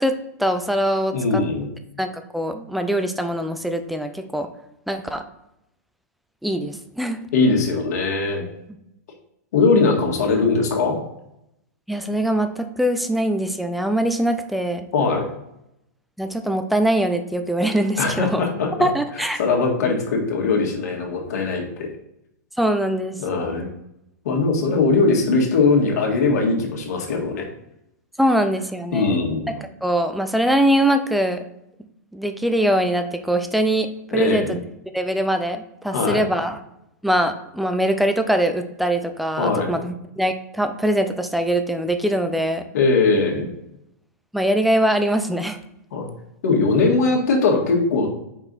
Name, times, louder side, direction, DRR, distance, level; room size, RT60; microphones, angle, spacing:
voice 1, 0.0-1.4 2.0-4.5 4.9-5.2 6.4-7.2 11.9-14.9 16.2-18.4 18.8-19.4 22.6-23.2 28.2-29.2 29.6-31.4 32.1-33.9 34.1-34.6 34.9-36.6 37.0-42.6 44.3-45.6, right 1 dB, ahead, 7 dB, 0.4 m, -22 dB
voice 2, 1.1-1.7 7.3-8.4 9.5-11.0 14.9-15.2 18.0-18.9 19.2-21.9 23.2-23.7 24.2-27.4 28.9-29.5 34.1-34.6 35.9-36.2 39.4-39.8 42.7-43.5 45.9-46.1 46.4-48.1, left 4 dB, 65° left, 0 dB, 1.9 m, -20 dB
5.5 x 4.6 x 4.0 m, 0.83 s
supercardioid pair, 160°, 9 cm